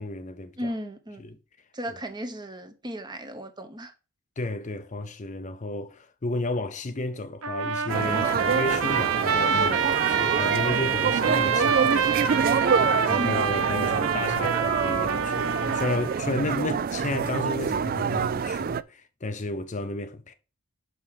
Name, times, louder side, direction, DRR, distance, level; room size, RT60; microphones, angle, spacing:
voice 1, 0.0-0.7 1.2-1.4 4.4-12.7 13.1-20.3, left 2 dB, 35° left, 0.6 m, -32 dB
voice 2, 0.6-1.2 1.7-3.9 13.2-13.5, equal, 20° right, 1.0 m, -35 dB
Trumpet, 7.4-16.2, right 6 dB, 80° right, 0.9 m, -26 dB
sound 1, 7.9-18.8, right 6 dB, 40° right, 0.3 m, -26 dB
5.8 x 5.6 x 6.3 m
head